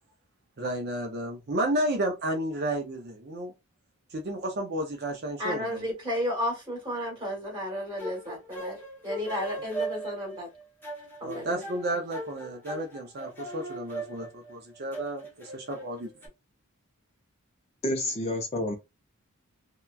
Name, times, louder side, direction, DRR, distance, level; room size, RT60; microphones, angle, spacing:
voice 1, 0.6-3.5 4.1-5.8 11.2-16.1, right 1 dB, 45° right, 0.5 m, -32 dB
voice 2, 5.4-8.8 9.0-10.5 11.2-11.6, left 1 dB, 20° right, 1.3 m, -32 dB
sound 1, 7.8-16.3, right 2 dB, 10° left, 0.8 m, -39 dB
voice 3, 17.8-18.8, left 1 dB, 30° left, 0.5 m, -29 dB
2.8 x 2.2 x 2.3 m
head